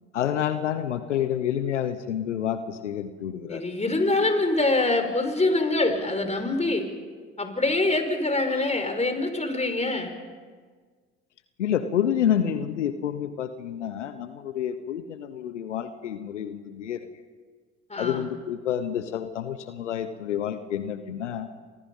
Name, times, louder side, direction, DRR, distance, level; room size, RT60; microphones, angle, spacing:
voice 1, 0.1-3.6 11.6-17.1 18.0-21.5, left 9 dB, 90° left, 11 dB, 1.1 m, -28 dB
voice 2, 3.5-6.9 7.4-10.1 17.9-18.2, left 2 dB, 20° left, 6 dB, 5.3 m, -24 dB
30.0 x 25.5 x 5.6 m, 1.6 s
hypercardioid pair, 55°, 35 cm